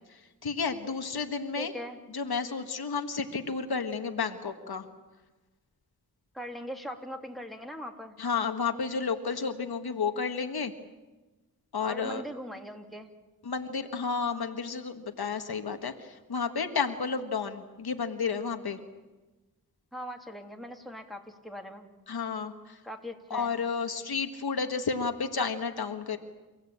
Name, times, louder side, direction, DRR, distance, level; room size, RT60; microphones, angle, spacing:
voice 1, 0.1-1.7 2.1-4.9 8.2-10.7 11.7-12.2 13.4-18.8 22.1-22.8 23.3-26.2, left 5 dB, 85° left, 6 dB, 1.7 m, -31 dB
voice 2, 1.6-2.0 6.3-8.1 11.8-13.1 19.9-21.9 22.8-23.5, equal, ahead, 2 dB, 3.1 m, -40 dB
29.5 x 16.5 x 8.7 m, 1.2 s
cardioid pair, 55°, 37 cm